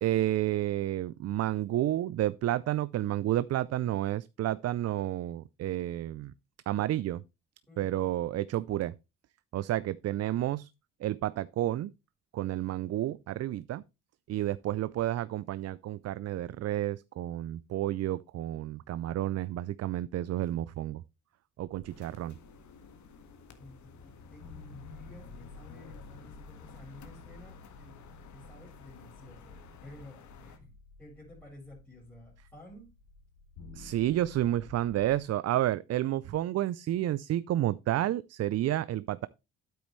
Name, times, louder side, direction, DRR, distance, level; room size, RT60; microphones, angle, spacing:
voice 1, 0.0-6.3 6.7-7.2 7.8-8.9 9.5-10.7 11.0-11.9 12.3-13.8 14.3-21.0 21.6-22.3 33.8-39.3, right 13 dB, 55° right, 0.4 m, -30 dB
voice 2, 7.7-8.2 23.6-23.8 24.0-28.0 28.3-30.7 31.0-33.0, left 1 dB, 5° left, 4.0 m, -52 dB
sound 1, 21.7-35.2, left 3 dB, 90° left, 2.5 m, -53 dB
sound 2, 21.9-30.6, left 5 dB, 70° left, 1.8 m, -53 dB
9.4 x 8.3 x 3.1 m
cardioid pair, 90°, 30 cm